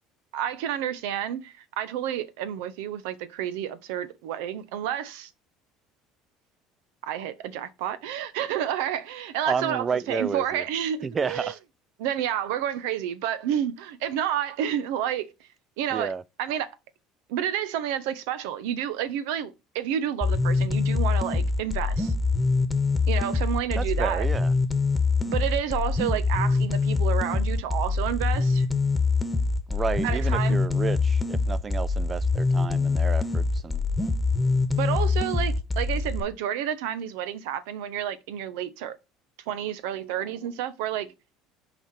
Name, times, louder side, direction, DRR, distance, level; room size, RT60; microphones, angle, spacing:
voice 1, 0.3-5.3 7.0-11.5 12.0-15.3 15.8-16.7 17.3-22.1 23.1-24.3 25.3-28.7 30.0-30.6 34.7-39.0 39.5-41.1, right 10 dB, 80° right, 0.8 m, -30 dB
voice 2, 9.5-10.6 11.0-11.6 15.9-16.2 23.7-24.5 29.7-33.8, right 5 dB, 30° right, 0.3 m, -31 dB
sound 1, 20.2-36.2, left 3 dB, 15° left, 1.2 m, -24 dB
5.7 x 4.2 x 5.9 m
supercardioid pair, 95°, 0 cm